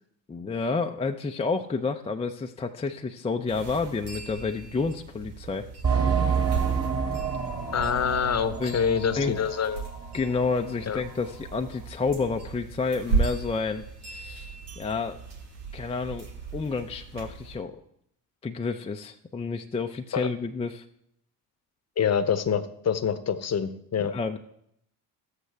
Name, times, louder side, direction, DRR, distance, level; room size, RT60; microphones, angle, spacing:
voice 1, 0.3-5.7 8.6-9.4 10.1-15.2 15.7-16.3 16.5-17.7 18.4-20.8 24.1-24.4, left 4 dB, 15° left, 4 dB, 0.4 m, -30 dB
sound 1, 3.5-17.6, right 4 dB, 85° right, 1.8 m, -36 dB
sound 2, 5.8-10.1 10.4-10.5 11.1-11.2, right 6 dB, 30° right, 2.4 m, -28 dB
voice 2, 7.7-9.8 10.9-11.0 20.1-20.3 22.0-24.1, left 7 dB, 30° left, 13 dB, 0.8 m, -26 dB
12.5 x 8.2 x 3.4 m, 0.74 s
hypercardioid pair, 60°, 49 cm